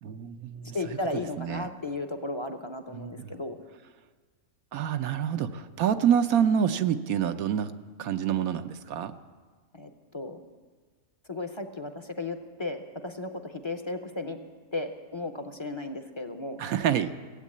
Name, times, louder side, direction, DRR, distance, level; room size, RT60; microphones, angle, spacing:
voice 1, 0.0-1.7 2.9-3.3 4.7-7.7 8.0-9.2 16.6-17.1, right 8 dB, 85° right, 9 dB, 1.2 m, -27 dB
voice 2, 0.7-3.6 9.7-10.4 11.3-14.4 14.7-16.6, left 2 dB, 30° left, 6 dB, 0.6 m, -35 dB
16.5 x 8.3 x 8.5 m, 1.5 s
omnidirectional pair, 1.5 m